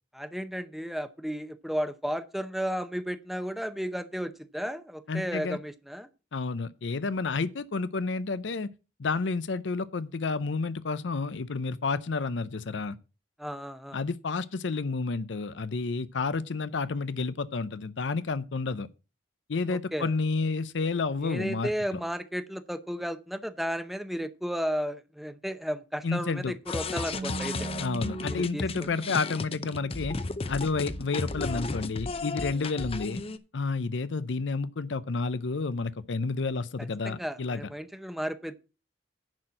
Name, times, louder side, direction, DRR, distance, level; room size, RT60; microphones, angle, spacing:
voice 1, 0.1-6.1 13.4-14.0 19.7-20.1 21.2-27.7 28.3-28.9 37.0-38.6, equal, ahead, 0.7 m, -34 dB
voice 2, 5.1-5.6 6.3-8.7 9.0-13.0 13.9-18.9 19.5-22.0 26.0-26.5 27.8-30.2 30.5-33.2 33.5-37.6, left 4 dB, 85° left, 0.6 m, -30 dB
sound 1, 26.7-33.4, left 3 dB, 30° left, 0.6 m, -34 dB
Bass guitar, 27.1-33.4, right 5 dB, 45° right, 1.0 m, -43 dB
10.5 x 4.4 x 7.5 m
head